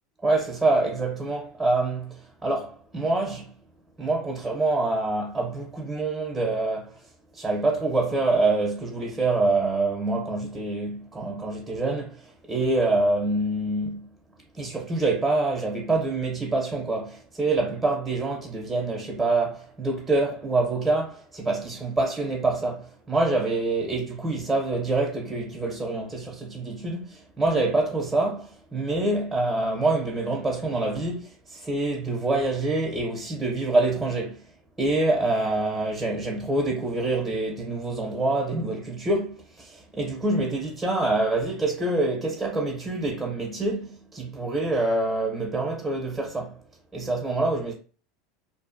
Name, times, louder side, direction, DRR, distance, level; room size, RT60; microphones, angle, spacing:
voice 1, 0.2-3.5 4.0-7.0 7.3-14.1 14.5-34.4 34.8-46.6 46.9-47.7, right 2 dB, 10° right, 0.8 m, -26 dB
2.5 x 2.2 x 2.6 m
hypercardioid pair, 105°, 0 cm